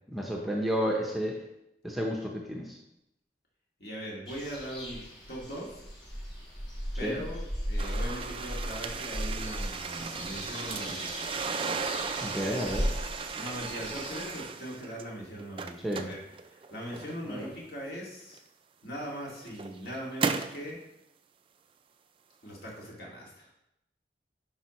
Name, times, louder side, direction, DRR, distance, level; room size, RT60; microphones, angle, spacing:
voice 1, 0.1-1.4 1.8-2.8 7.0-7.2 12.2-12.9 15.8-16.1 17.3-17.5, equal, ahead, -1 dB, 0.7 m, -31 dB
voice 2, 3.8-5.8 7.0-11.3 13.4-16.2 16.4-18.4 18.8-20.8 22.4-23.5, equal, 55° left, -3 dB, 2.1 m, -40 dB
sound 1, 4.3-14.4, equal, 30° left, 2.6 m, -37 dB
sound 2, 7.8-15.0 15.4-17.4 18.3-18.4 19.1-20.6, right 5 dB, 30° right, 0.3 m, -36 dB
10.0 x 5.4 x 3.1 m, 0.86 s
head